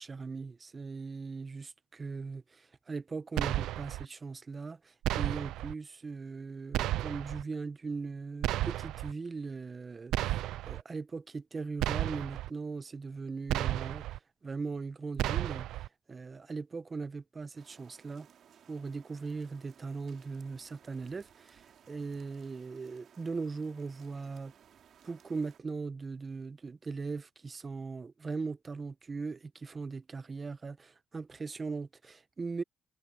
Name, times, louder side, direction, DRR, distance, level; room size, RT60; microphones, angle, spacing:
voice 1, 0.0-14.1 14.4-15.7 16.1-18.3 18.7-24.5 25.0-32.6, right 4 dB, 35° right, 1.0 m, -39 dB
sound 1, 3.4-4.0 5.0-5.7 6.7-7.4 8.4-9.1 10.1-10.8 11.8-12.5 13.5-14.2 15.2-15.9, right 15 dB, 90° right, 0.4 m, -32 dB
sound 2, 17.6-25.6, right 8 dB, 65° right, 2.7 m, -60 dB
cardioid pair, 90°, 0 cm